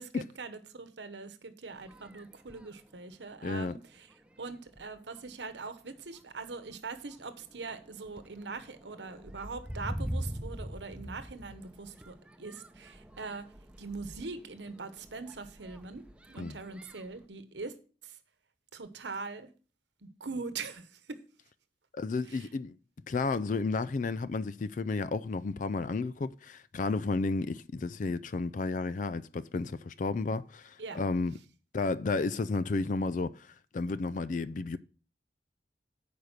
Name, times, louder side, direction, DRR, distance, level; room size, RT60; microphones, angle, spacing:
voice 1, 0.0-4.1 4.4-13.5 13.8-17.7 18.0-18.1 18.7-19.5 20.0-21.2 22.3-22.5 30.8-31.0, right 4 dB, 90° right, 1.0 m, -42 dB
sound 1, 1.7-2.8 3.5-3.6 4.1-4.4 4.7-5.3 6.0-6.2 6.6-17.3, equal, 5° right, 0.6 m, -43 dB
voice 2, 3.4-3.8 16.4-16.6 21.9-22.8 23.1-31.3 31.7-33.5 33.7-34.8, left 3 dB, 45° left, 0.4 m, -32 dB
8.9 x 5.1 x 6.5 m
head